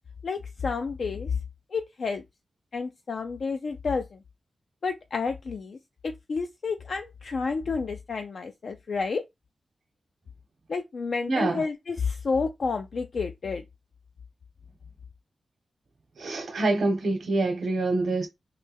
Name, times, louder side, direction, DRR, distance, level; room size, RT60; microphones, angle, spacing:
voice 1, 0.2-1.4 1.7-2.2 2.7-4.2 4.8-5.8 6.0-9.2 10.7-13.6, left 4 dB, 65° left, 0.3 m, -30 dB
voice 2, 11.3-11.6 16.2-18.3, right 2 dB, 80° right, 0.9 m, -26 dB
3.2 x 2.1 x 3.3 m
wide cardioid pair, 110°, 0 cm